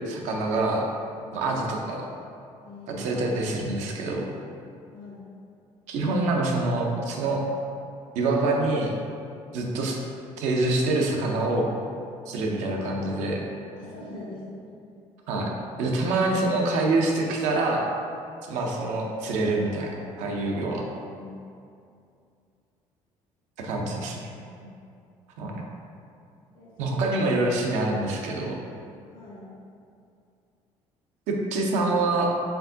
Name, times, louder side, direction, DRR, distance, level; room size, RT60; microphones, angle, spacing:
voice 1, 0.1-0.9 1.3-2.1 3.0-4.3 5.9-7.4 8.1-8.9 9.5-10.0 10.4-11.7 12.3-13.4 15.3-15.5 15.8-17.8 18.5-20.8 23.6-24.2 25.4-25.6 26.8-28.6 31.3-32.3, right 2 dB, 80° right, 0 dB, 0.6 m, -26 dB
voice 2, 2.6-3.1 4.9-5.3 13.7-14.7 21.0-21.3 23.8-24.7 26.5-27.0 29.1-29.5, left 1 dB, 80° left, -5 dB, 1.1 m, -44 dB
4.5 x 3.6 x 2.7 m, 2.5 s
supercardioid pair, 90°, 12 cm